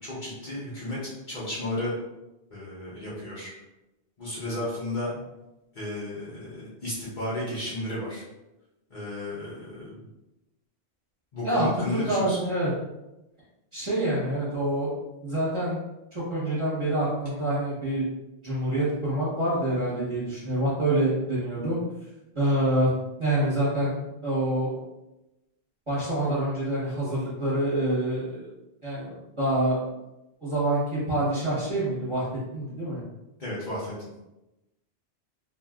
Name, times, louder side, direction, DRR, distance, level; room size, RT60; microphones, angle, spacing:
voice 1, 0.0-1.9 2.5-3.5 4.2-5.1 5.7-8.2 8.9-9.9 11.3-12.4 33.4-34.1, left 1 dB, 50° left, -8 dB, 0.9 m, -33 dB
voice 2, 11.4-12.7 13.7-14.9 15.2-15.8 16.1-18.1 18.4-21.8 22.3-22.9 23.2-24.7 25.9-28.5 28.8-29.8 30.4-32.3 32.5-33.0, right 1 dB, 30° right, -9 dB, 1.1 m, -26 dB
2.8 x 2.5 x 2.3 m, 0.96 s
omnidirectional pair, 1.1 m